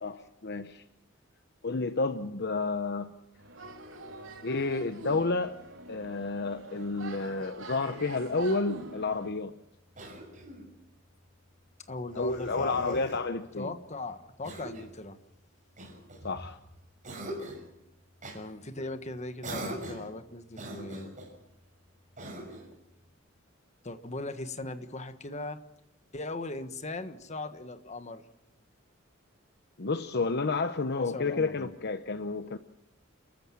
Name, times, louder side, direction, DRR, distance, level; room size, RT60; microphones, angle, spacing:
voice 1, 0.0-0.8 1.6-3.1 4.4-5.6 5.9-9.5 12.1-13.7 16.2-16.6 29.8-32.6, left 3 dB, 55° left, 0.9 m, -30 dB
sound 1, 3.4-9.3, right 2 dB, 70° right, 3.1 m, -45 dB
Cough, 9.9-10.7 12.1-13.2 14.4-15.0 15.8-16.6 17.0-17.7 18.2-18.4 19.4-20.1 20.5-21.3 22.2-22.7, right 1 dB, 40° right, 6.0 m, -42 dB
voice 2, 11.9-13.2 13.6-15.2 18.3-21.1 23.8-25.6 26.1-28.2 31.0-31.7, left 2 dB, 35° left, 1.5 m, -39 dB
29.5 x 14.5 x 7.6 m
head